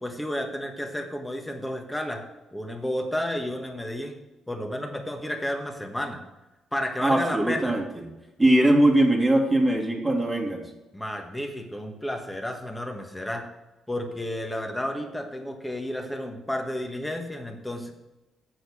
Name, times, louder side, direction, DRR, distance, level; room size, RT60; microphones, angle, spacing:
voice 1, 0.0-2.2 2.5-4.2 4.5-6.2 6.7-7.8 10.9-13.4 13.9-17.9, left 1 dB, 10° left, 4 dB, 1.5 m, -31 dB
voice 2, 7.0-8.1 8.4-10.6, right 1 dB, 15° right, 0 dB, 1.9 m, -21 dB
7.8 x 6.5 x 6.1 m, 1.0 s
cardioid pair, 90°, 0 cm